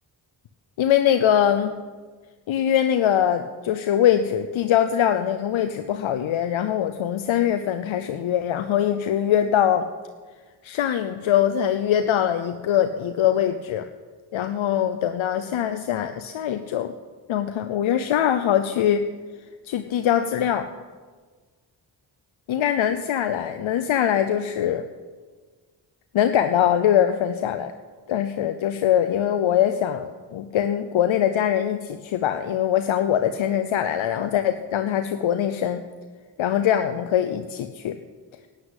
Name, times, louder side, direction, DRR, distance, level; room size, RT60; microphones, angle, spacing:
voice 1, 0.8-1.8 2.5-9.8 10.6-13.8 14.3-16.9 17.3-19.1 19.6-20.7 22.5-24.8 26.1-27.7 28.1-35.9 36.4-38.0, left 10 dB, 85° left, 9 dB, 0.7 m, -22 dB
11.5 x 10.0 x 8.0 m, 1.4 s
supercardioid pair, 40°, 47 cm